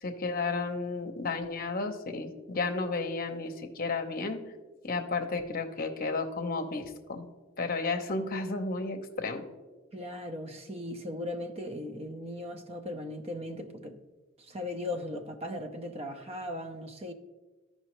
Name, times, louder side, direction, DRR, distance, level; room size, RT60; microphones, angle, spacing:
voice 1, 0.0-4.4 4.8-7.3 7.6-9.4, left 3 dB, 45° left, 0.8 m, -32 dB
voice 2, 9.9-14.0 14.4-17.1, left 1 dB, 30° right, 0.7 m, -38 dB
13.0 x 5.5 x 3.1 m
head